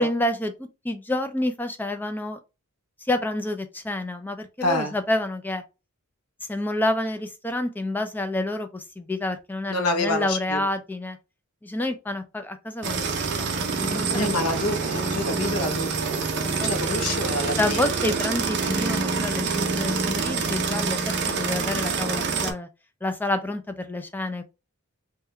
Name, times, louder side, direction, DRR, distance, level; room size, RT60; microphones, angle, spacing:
voice 1, 0.0-2.4 3.1-5.6 6.5-11.2 11.6-13.1 13.4-14.3 14.9-15.1 16.4-17.0 17.6-21.0 21.3-22.7 23.0-24.4, left 1 dB, 10° left, 0.3 m, -28 dB
voice 2, 4.6-4.9 9.7-10.6 14.1-16.2 16.6-17.8, left 2 dB, 85° left, 0.7 m, -27 dB
sound 1, 12.8-22.5, right 4 dB, 50° right, 0.5 m, -26 dB
3.5 x 2.2 x 3.1 m
head